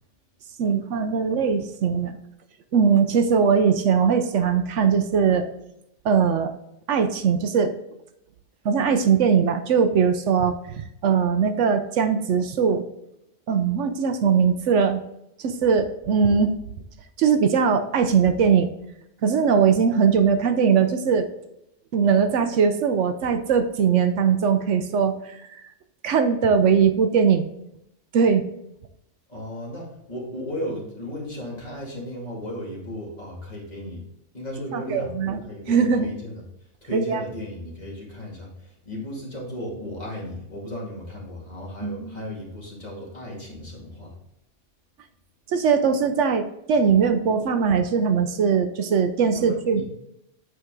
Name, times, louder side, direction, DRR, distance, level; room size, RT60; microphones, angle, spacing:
voice 1, 0.6-2.2 2.7-5.5 6.0-6.5 6.9-7.7 8.6-12.8 13.5-15.0 15.4-16.5 17.2-18.7 19.2-21.3 21.9-25.6 26.0-27.5 28.1-28.5 34.7-35.4 35.7-36.1 36.9-37.2 41.8-42.2 45.5-49.8, right 6 dB, 75° right, 8 dB, 1.0 m, -20 dB
voice 2, 29.3-34.0 34.3-36.4 36.8-44.2 49.4-49.8, equal, 35° left, -4 dB, 2.4 m, -35 dB
8.1 x 4.7 x 3.7 m, 0.81 s
omnidirectional pair, 1.3 m